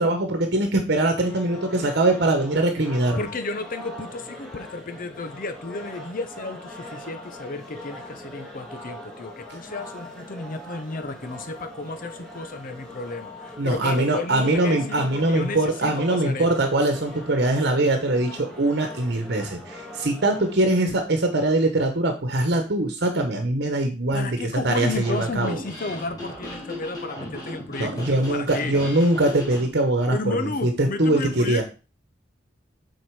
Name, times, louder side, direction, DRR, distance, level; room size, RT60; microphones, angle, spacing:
voice 1, 0.0-3.2 13.6-24.4 24.6-25.6 27.8-31.6, right 2 dB, 60° right, 5 dB, 1.1 m, -22 dB
sound 1, 1.2-20.6, left 1 dB, 5° left, 2.1 m, -41 dB
voice 2, 3.2-16.7 24.1-28.8 30.1-31.6, left 3 dB, 50° left, 9 dB, 0.8 m, -33 dB
sound 2, 24.7-29.7, left 1 dB, 20° left, 2.8 m, -36 dB
7.8 x 4.6 x 4.8 m, 0.33 s
head